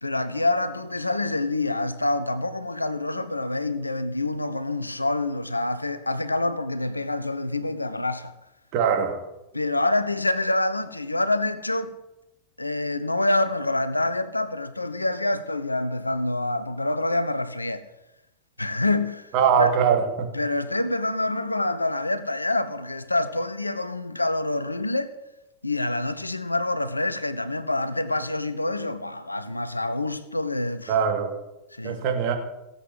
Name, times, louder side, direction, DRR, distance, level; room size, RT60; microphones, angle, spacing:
voice 1, 0.0-8.3 9.5-11.9 12.6-17.8 18.6-19.3 19.6-19.7 20.3-25.1 25.6-31.0 31.7-32.0, left 2 dB, 85° left, 1.0 m, -26 dB
voice 2, 8.7-9.2 19.3-20.3 30.9-31.4 31.8-32.4, right 7 dB, 45° right, 2.7 m, -22 dB
16.5 x 8.2 x 7.9 m
figure-of-eight pair, 90°, 0 cm